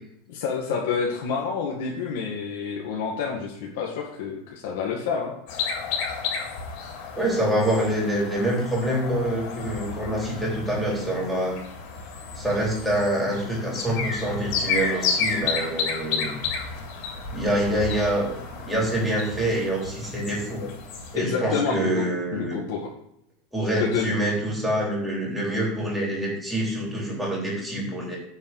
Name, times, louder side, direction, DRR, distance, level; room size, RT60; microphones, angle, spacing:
voice 1, 0.3-5.3 21.2-22.9 23.8-24.1, left 6 dB, 75° left, -2 dB, 1.9 m, -28 dB
sound 1, 5.5-21.2, left 5 dB, 55° left, 3.5 m, -32 dB
voice 2, 7.2-11.6 12.3-16.4 17.3-20.7 21.1-22.5 23.5-28.2, right 1 dB, ahead, -4 dB, 3.5 m, -26 dB
9.8 x 4.5 x 7.8 m, 0.77 s
supercardioid pair, 155°, 0 cm